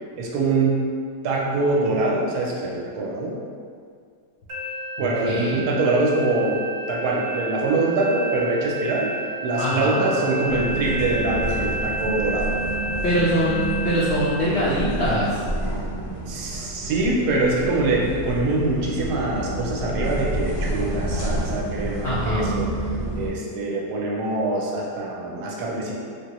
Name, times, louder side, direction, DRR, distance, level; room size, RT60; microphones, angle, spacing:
voice 1, 0.2-0.9 1.2-3.3 5.0-6.6 6.9-9.1 9.4-12.6 16.3-22.7 23.1-25.9, right 2 dB, 75° right, -3 dB, 1.0 m, -24 dB
sound 1, 4.5-14.2, right 1 dB, 50° right, 0.8 m, -31 dB
voice 2, 5.0-5.6 9.6-10.0 13.0-15.4 22.0-22.5, equal, 85° left, -8 dB, 0.5 m, -23 dB
sound 2, 10.5-23.3, right 1 dB, 30° left, 0.7 m, -29 dB
3.5 x 2.2 x 2.9 m, 2.2 s
omnidirectional pair, 1.8 m